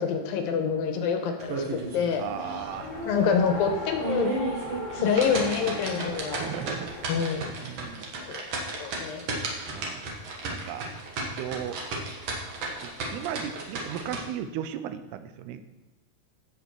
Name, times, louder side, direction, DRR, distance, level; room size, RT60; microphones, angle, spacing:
voice 1, 0.0-2.2 3.0-4.3 4.9-6.5 7.1-7.5 8.2-8.4 8.7-9.3, left 6 dB, 75° left, 5 dB, 2.6 m, -26 dB
sound 1, 1.4-2.1 2.5-2.6 3.1-3.2 3.8-14.2, right 3 dB, 55° right, 2.1 m, -33 dB
Race car auto racing, 2.2-7.5, left 2 dB, 25° left, 0.7 m, -38 dB
voice 2, 2.2-3.0 6.4-6.9 7.6-8.1 9.7-10.1 10.5-10.9 11.2-11.8 12.8-15.7, right 10 dB, 85° right, 10 dB, 2.7 m, -36 dB
15.5 x 6.1 x 4.6 m, 1.1 s
omnidirectional pair, 4.5 m